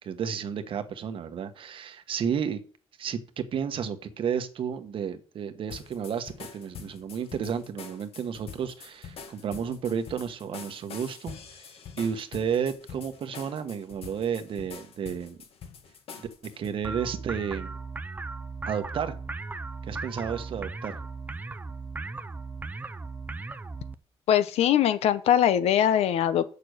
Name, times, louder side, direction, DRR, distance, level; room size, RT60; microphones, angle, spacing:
voice 1, 0.0-2.6 3.0-15.4 16.2-17.7 18.7-19.1 19.8-21.0, right 7 dB, 60° right, 9 dB, 1.2 m, -32 dB
sound 1, 5.7-16.8, left 6 dB, 70° left, 1.6 m, -45 dB
sound 2, 16.8-23.9, right 3 dB, 15° right, 0.5 m, -37 dB
voice 2, 24.3-26.4, left 10 dB, 85° left, 14 dB, 0.9 m, -22 dB
7.7 x 6.9 x 6.3 m, 0.42 s
cardioid pair, 135°, 10 cm